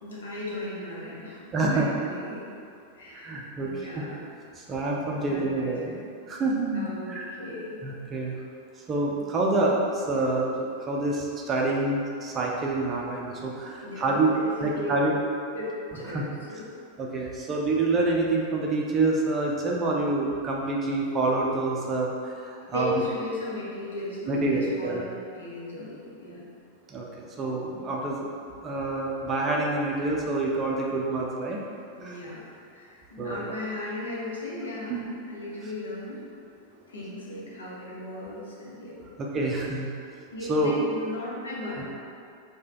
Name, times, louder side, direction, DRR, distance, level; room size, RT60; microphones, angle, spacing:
voice 1, 0.0-2.4 2.9-4.2 5.1-5.7 6.7-7.8 13.8-14.9 15.5-15.6 15.9-16.7 22.7-25.0 25.3-26.5 32.0-32.4 32.7-35.0 35.3-38.9 40.3-41.9, left 2 dB, 65° left, -6 dB, 0.8 m, -36 dB
voice 2, 1.5-1.9 3.1-4.0 4.6-7.3 7.8-8.4 8.9-14.3 14.6-15.1 16.1-16.2 17.0-22.9 24.3-25.0 26.9-28.3 28.6-31.6 32.0-32.1 33.2-33.4 34.9-35.1 39.2-39.9 40.5-40.7 41.8-41.9, right 2 dB, 25° right, -2 dB, 0.4 m, -27 dB
3.2 x 2.2 x 3.6 m, 2.4 s
figure-of-eight pair, 90°, 0 cm